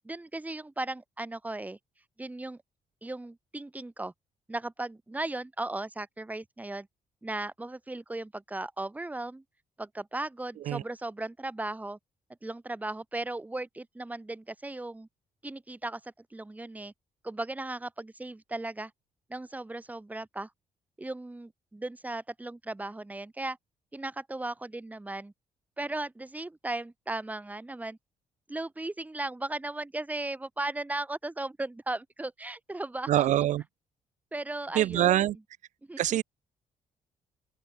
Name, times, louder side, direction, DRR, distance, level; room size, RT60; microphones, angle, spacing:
voice 1, 0.0-1.8 2.2-2.6 3.0-4.1 4.5-6.9 7.2-9.4 9.8-12.0 12.4-15.1 15.4-16.9 17.2-18.9 19.3-20.5 21.0-23.6 23.9-25.3 25.8-28.0 28.5-33.3 34.3-35.4 35.9-36.2, right 2 dB, 10° right, 1.5 m, -36 dB
voice 2, 33.1-33.6 34.8-35.4 36.0-36.2, right 13 dB, 65° right, 0.4 m, -24 dB
open air
cardioid pair, 120°, 13 cm